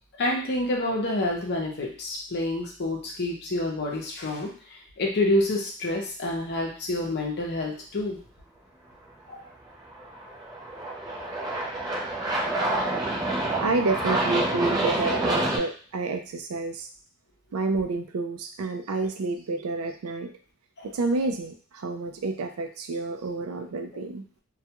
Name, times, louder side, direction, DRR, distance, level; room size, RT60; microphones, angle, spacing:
voice 1, 0.2-4.5 5.0-8.2 9.3-9.4 11.2-11.3 14.0-14.1 20.8-20.9, left 1 dB, 50° left, 0 dB, 0.7 m, -28 dB
Aircraft, 9.8-15.6, right 1 dB, 20° right, 0.4 m, -27 dB
voice 2, 13.6-16.9 17.5-20.3 20.9-24.2, right 3 dB, 85° right, 6 dB, 0.4 m, -29 dB
2.3 x 2.2 x 2.8 m, 0.42 s
head